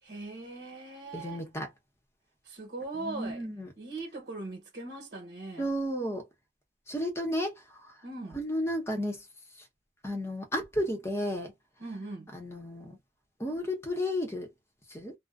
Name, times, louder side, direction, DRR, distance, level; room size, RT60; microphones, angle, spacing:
voice 1, 0.0-1.5 2.4-3.5 3.8-5.7 8.0-8.4 11.8-12.3, right 2 dB, 60° right, 1.0 m, -40 dB
voice 2, 1.1-1.7 3.0-3.7 5.6-6.2 6.9-7.5 7.8-7.9 8.3-9.2 10.0-11.5 12.3-13.0 13.4-14.5 14.9-15.1, equal, 15° left, 0.8 m, -32 dB
2.5 x 2.1 x 2.4 m
head